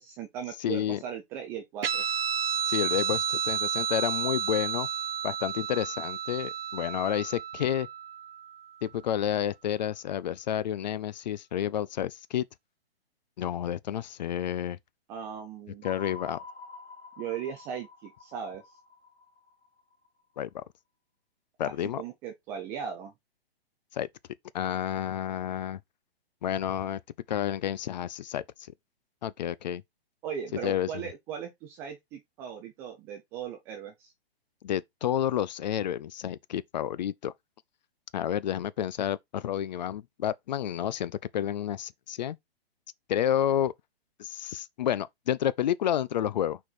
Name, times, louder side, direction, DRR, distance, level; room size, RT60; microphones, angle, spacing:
voice 1, 0.0-2.0 15.1-15.9 17.2-18.6 21.6-23.1 30.2-34.1, right 8 dB, 10° right, 0.3 m, -38 dB
voice 2, 0.6-1.0 2.7-4.9 5.2-7.9 8.8-12.5 13.4-14.8 15.8-16.4 20.4-20.6 21.6-22.0 23.9-24.1 24.5-25.8 26.4-27.0 27.3-28.4 29.2-29.8 30.6-30.9 34.6-37.3 38.1-42.4 43.1-43.7 44.2-46.6, left 10 dB, 45° left, 0.5 m, -30 dB
Guitar, 1.8-8.7, right 8 dB, 65° right, 0.8 m, -31 dB
sound 1, 15.8-20.1, left 4 dB, 85° left, 3.1 m, -47 dB
5.9 x 4.6 x 4.0 m
figure-of-eight pair, 125°, 31 cm